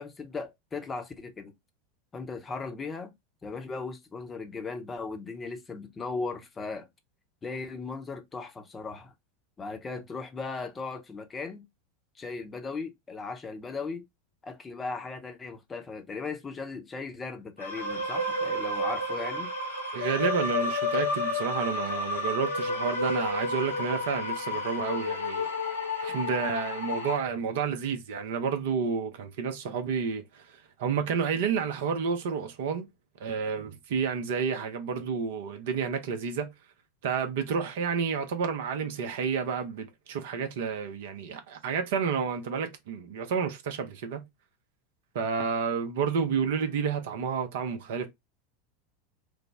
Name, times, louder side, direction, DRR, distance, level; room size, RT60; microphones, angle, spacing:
voice 1, 0.0-1.5 2.1-3.1 3.4-6.9 7.4-9.1 9.6-11.6 12.2-14.0 14.4-19.5, left 4 dB, 20° left, 0.7 m, -37 dB
sound 1, 17.6-27.2, left 2 dB, 80° left, 0.9 m, -31 dB
voice 2, 19.9-25.5 26.0-30.4 30.8-32.9 33.2-36.5 37.0-44.2 45.1-48.1, right 6 dB, 55° right, 0.6 m, -30 dB
3.3 x 2.0 x 3.3 m
figure-of-eight pair, 85°, 0 cm